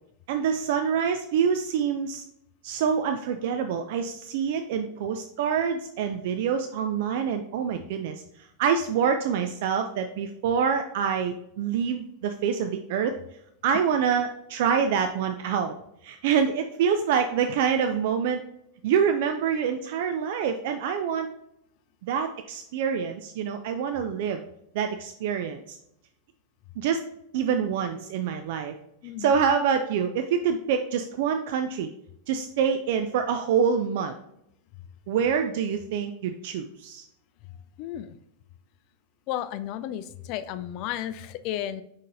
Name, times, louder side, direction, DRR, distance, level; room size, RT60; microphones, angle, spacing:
voice 1, 0.3-2.2 2.6-13.1 13.6-15.7 16.0-18.4 18.8-21.3 22.0-24.4 24.7-25.8 26.8-27.0 27.3-28.7 29.2-31.9 32.3-34.1 35.1-37.1, right 7 dB, 50° right, 6 dB, 0.3 m, -26 dB
voice 2, 29.0-29.4 37.8-38.2 39.3-41.8, left 11 dB, 45° left, 12 dB, 0.3 m, -33 dB
5.2 x 3.7 x 2.7 m, 0.76 s
figure-of-eight pair, 90°, 0 cm